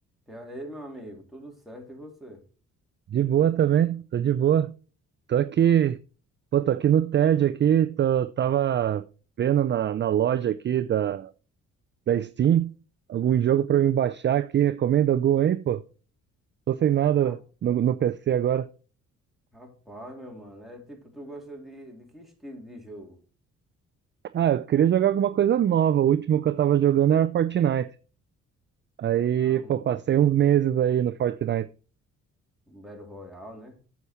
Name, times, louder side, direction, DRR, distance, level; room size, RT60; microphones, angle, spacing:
voice 1, 0.3-2.4 17.2-17.4 19.5-23.2 29.3-30.0 32.7-33.8, equal, ahead, 3.1 m, -43 dB
voice 2, 3.1-4.7 5.3-6.0 6.5-9.0 9.4-11.3 12.1-12.7 13.1-15.8 16.7-18.7 24.3-27.9 29.0-31.7, right 10 dB, 40° right, 0.4 m, -22 dB
8.2 x 7.1 x 4.4 m
cardioid pair, 90°, 30 cm